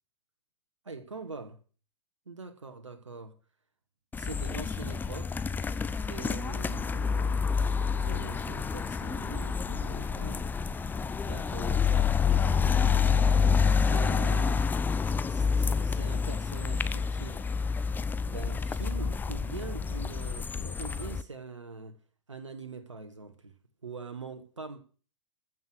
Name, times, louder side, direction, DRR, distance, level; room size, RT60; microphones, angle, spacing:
voice 1, 0.8-1.6 2.3-3.3 4.2-5.5 5.9-7.4 8.0-10.5 11.2-12.8 13.7-14.6 15.1-17.4 18.3-22.0 22.3-23.5 23.8-24.8, right 4 dB, 90° right, 1.4 m, -43 dB
sound 1, 4.1-21.2, left 5 dB, 10° left, 0.6 m, -28 dB
15.0 x 6.3 x 7.8 m
hypercardioid pair, 105°, 15 cm